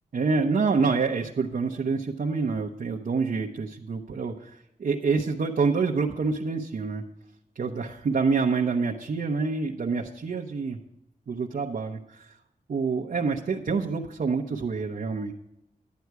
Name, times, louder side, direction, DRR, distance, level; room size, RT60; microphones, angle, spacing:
voice 1, 0.1-7.0 7.5-10.8 11.3-12.4 12.7-15.3, right 4 dB, 60° right, 0 dB, 0.9 m, -27 dB
11.5 x 9.5 x 4.7 m, 0.82 s
wide cardioid pair, 140°, 16 cm